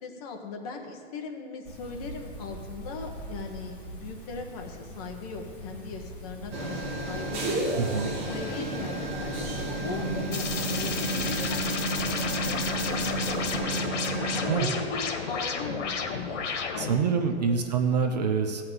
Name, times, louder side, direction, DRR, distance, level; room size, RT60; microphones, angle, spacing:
voice 1, 0.0-7.6 7.9-9.5 9.8-13.9 14.3-17.6, left 4 dB, 30° left, 2 dB, 1.2 m, -39 dB
sound 1, 1.7-13.6, right 1 dB, 5° left, 1.2 m, -42 dB
sound 2, 6.5-14.5, right 1 dB, 20° right, 1.2 m, -31 dB
voice 2, 7.8-8.1 14.5-14.7 16.8-18.6, right 6 dB, 35° right, 6 dB, 0.6 m, -26 dB
sound 3, 10.3-17.0, left 5 dB, 80° left, 1.8 m, -32 dB
15.5 x 5.8 x 7.9 m, 2.1 s
supercardioid pair, 175°, 35 cm